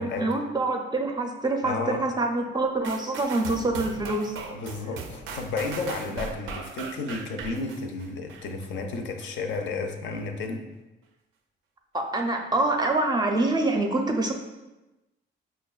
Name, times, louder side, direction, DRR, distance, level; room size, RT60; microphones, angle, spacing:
voice 1, 0.0-4.4 11.9-14.3, right 2 dB, 20° right, 2 dB, 0.4 m, -26 dB
voice 2, 1.6-2.1 4.5-10.7, left 3 dB, 70° left, 4 dB, 0.5 m, -32 dB
sound 1, 2.8-8.7 9.2-9.3, right 4 dB, 85° right, 0.4 m, -38 dB
5.4 x 2.2 x 2.3 m, 1.0 s
cardioid pair, 90°, 20 cm